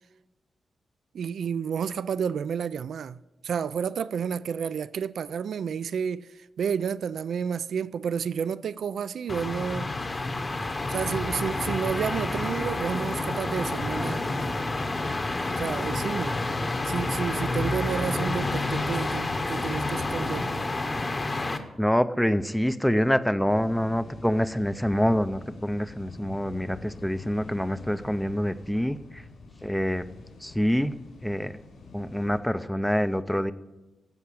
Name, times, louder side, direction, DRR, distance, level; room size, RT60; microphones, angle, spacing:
voice 1, 1.1-3.2 3.4-6.3 6.6-9.9 10.9-14.3 15.6-16.4 16.9-20.5, right 7 dB, 65° right, 0.3 m, -30 dB
sound 1, 9.3-21.6, left 2 dB, 25° left, 0.9 m, -29 dB
voice 2, 21.8-29.2 29.6-30.0 30.4-31.0 31.2-31.5 31.9-33.5, equal, 5° left, 0.4 m, -26 dB
sound 2, 23.5-32.4, left 3 dB, 85° left, 4.4 m, -46 dB
15.5 x 5.9 x 8.4 m
wide cardioid pair, 175°, 0 cm